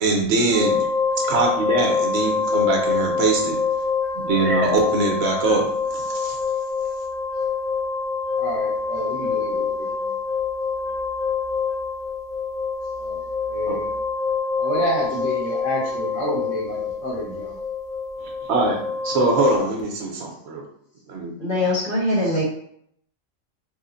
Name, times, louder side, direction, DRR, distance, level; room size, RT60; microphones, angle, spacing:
voice 1, 0.0-0.8 1.2-3.6 4.1-5.6 5.9-6.4 13.7-13.8 18.5-18.8 19.0-20.6 21.1-21.3, right 3 dB, 65° right, 0 dB, 0.9 m, -22 dB
sound 1, 0.5-19.6, left 5 dB, 40° right, 0.4 m, -25 dB
voice 2, 8.4-10.1 10.8-10.9 12.9-13.9 14.6-17.6 22.2-22.4, equal, 70° left, -5 dB, 1.5 m, -29 dB
voice 3, 21.4-22.4, left 1 dB, 45° left, -6 dB, 1.2 m, -22 dB
3.3 x 2.1 x 3.7 m, 0.69 s
omnidirectional pair, 1.4 m